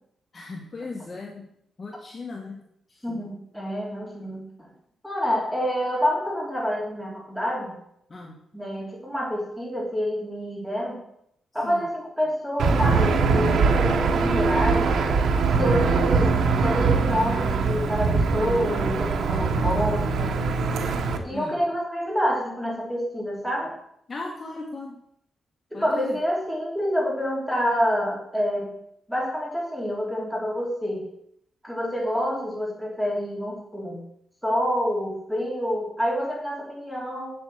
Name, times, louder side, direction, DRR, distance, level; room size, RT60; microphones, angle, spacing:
voice 1, 0.3-1.5 1.8-2.6 2.9-3.3 8.1-8.4 11.5-11.9 15.5-16.0 21.3-21.6 24.1-25.0 25.7-26.2, left 3 dB, 25° left, 0 dB, 1.5 m, -37 dB
voice 2, 3.0-4.7 5.0-7.7 8.5-11.0 11.5-14.9 15.6-16.4 16.6-20.4 21.2-23.7 25.7-28.7 29.1-31.0 31.6-34.0 34.4-37.3, equal, 5° right, -2 dB, 3.2 m, -27 dB
Aircraft / Engine, 12.6-21.2, right 4 dB, 80° right, 1.4 m, -22 dB
8.3 x 8.0 x 7.8 m, 0.73 s
wide cardioid pair, 180°, 0 cm